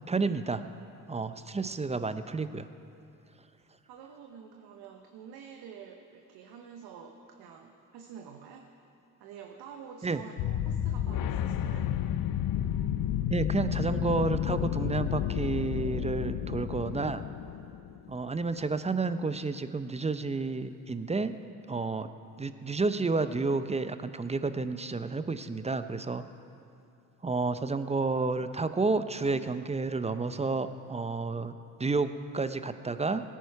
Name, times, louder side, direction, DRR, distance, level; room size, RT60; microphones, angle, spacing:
voice 1, 0.1-0.6 1.1-2.7 10.0-10.2 13.3-17.2 18.1-21.4 21.7-22.1 22.4-26.2 27.2-31.5 31.8-33.2, right 3 dB, 15° right, 11 dB, 0.6 m, -30 dB
voice 2, 3.9-8.7 9.2-11.9, right 7 dB, 70° right, 3 dB, 1.1 m, -48 dB
sound 1, 10.4-18.1, left 10 dB, 60° left, 0.7 m, -31 dB
17.0 x 10.0 x 4.7 m, 2.7 s
hypercardioid pair, 60°, 39 cm